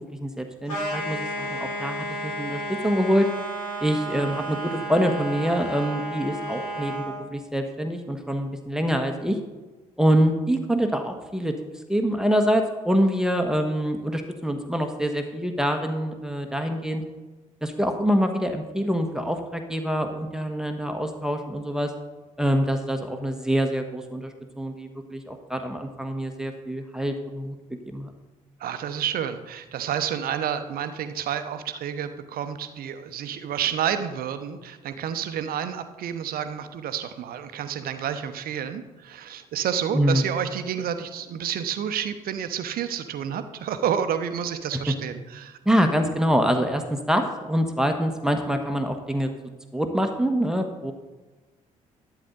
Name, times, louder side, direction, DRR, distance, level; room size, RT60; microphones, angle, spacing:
voice 1, 0.0-3.3 3.8-9.4 10.0-11.5 11.9-17.0 17.6-21.9 22.4-27.5 27.8-28.1 39.9-40.3 44.7-44.9 45.6-49.3 49.7-50.9, equal, 5° right, 5 dB, 1.3 m, -25 dB
sound 1, 0.7-7.2, right 1 dB, 75° left, 2.8 m, -32 dB
voice 2, 28.6-45.6, right 9 dB, 55° right, 10 dB, 0.9 m, -29 dB
11.5 x 9.3 x 3.9 m, 1.2 s
figure-of-eight pair, 45°, 18 cm